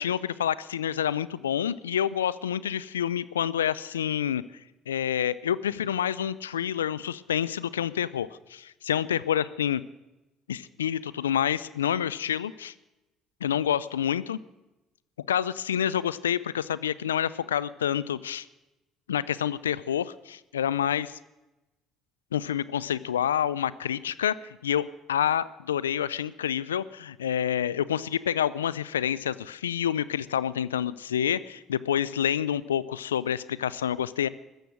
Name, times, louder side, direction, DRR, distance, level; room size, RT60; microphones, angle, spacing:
voice 1, 0.0-4.4 4.9-9.8 10.5-12.7 13.4-14.4 15.3-18.5 19.1-21.2 22.3-34.3, left 9 dB, 90° left, 19 dB, 0.4 m, -28 dB
16.0 x 13.5 x 6.1 m, 0.99 s
hypercardioid pair, 60°, 0 cm